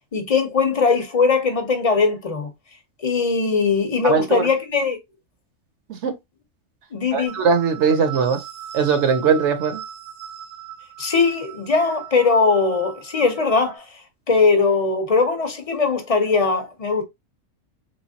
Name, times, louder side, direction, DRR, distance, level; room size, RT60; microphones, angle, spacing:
voice 1, 0.1-2.5 3.0-5.0 6.9-7.4 11.0-13.9 14.3-17.0, left 4 dB, 35° left, 0.7 m, -20 dB
voice 2, 4.0-4.5 5.9-6.1 7.1-8.4 8.7-9.8, right 6 dB, 65° right, 1.0 m, -20 dB
sound 1, 7.3-13.8, right 11 dB, 85° right, 1.5 m, -38 dB
3.3 x 3.1 x 2.7 m
omnidirectional pair, 1.3 m